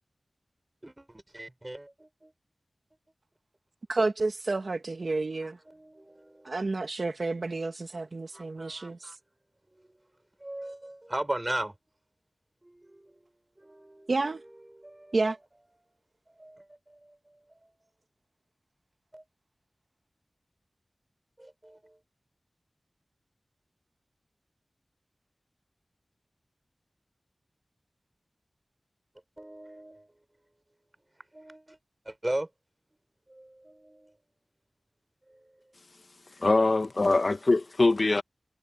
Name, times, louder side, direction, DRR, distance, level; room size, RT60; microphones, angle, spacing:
voice 1, 0.8-2.3 5.7-6.5 8.3-9.2 10.4-11.7 12.6-13.1 13.6-14.1 14.8-15.2 16.3-17.2 17.5-17.7 19.1-19.2 21.4-22.0 29.4-30.1 31.3-31.8 32.1-32.5 33.3-34.1, right 1 dB, 25° right, 5.4 m, -38 dB
voice 2, 3.9-5.6 6.5-9.1 14.1-14.4 15.1-15.4, right 3 dB, 60° right, 1.2 m, -30 dB
voice 3, 36.4-38.2, left 3 dB, 55° left, 1.1 m, -23 dB
wide cardioid pair, 70°, 0 cm